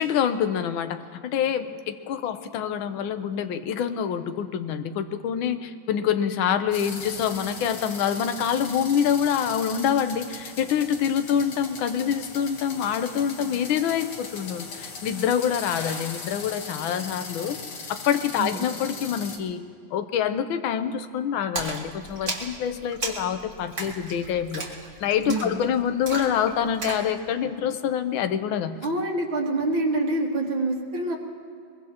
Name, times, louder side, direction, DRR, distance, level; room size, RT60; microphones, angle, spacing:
voice 1, 0.0-17.6 17.9-19.6 19.9-24.6 25.0-28.8, left 8 dB, 75° left, 9 dB, 1.5 m, -26 dB
sound 1, 6.7-19.4, left 4 dB, 60° left, 1.9 m, -39 dB
Splash splatter, 21.6-27.1, right 3 dB, 40° right, 2.1 m, -35 dB
voice 2, 28.8-31.2, right 2 dB, 75° right, -2 dB, 2.7 m, -26 dB
22.5 x 22.5 x 2.9 m, 2.4 s
omnidirectional pair, 2.2 m